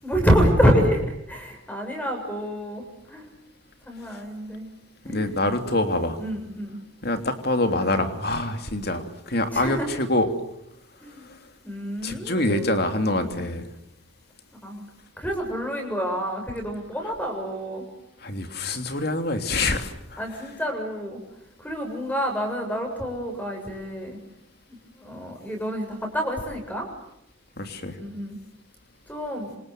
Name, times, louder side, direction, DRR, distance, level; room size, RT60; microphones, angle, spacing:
voice 1, 0.0-3.3 3.8-4.7 5.0-5.3 6.2-6.8 9.5-9.9 11.0-11.2 11.6-12.7 13.2-13.3 14.6-14.9 15.2-17.8 20.2-21.2 21.6-24.2 24.7-26.9 28.0-28.4 29.1-29.6, equal, 10° left, 2 dB, 7.2 m, -27 dB
voice 2, 5.0-6.2 7.0-10.3 12.0-13.6 18.2-20.2 27.6-28.0, left 2 dB, 50° left, 6 dB, 3.1 m, -25 dB
27.0 x 27.0 x 7.9 m, 0.84 s
head